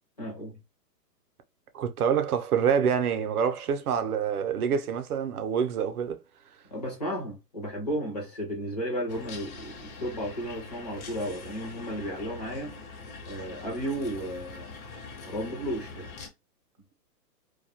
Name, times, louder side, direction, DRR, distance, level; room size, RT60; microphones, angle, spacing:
voice 1, 0.2-0.6 6.7-12.7 13.3-14.7 15.2-16.1, equal, 25° left, 0.4 m, -33 dB
voice 2, 1.7-6.2, right 7 dB, 65° right, 0.6 m, -26 dB
sound 1, 9.1-16.3, left 4 dB, 60° left, 0.7 m, -43 dB
2.3 x 2.0 x 2.7 m
hypercardioid pair, 165°, 49 cm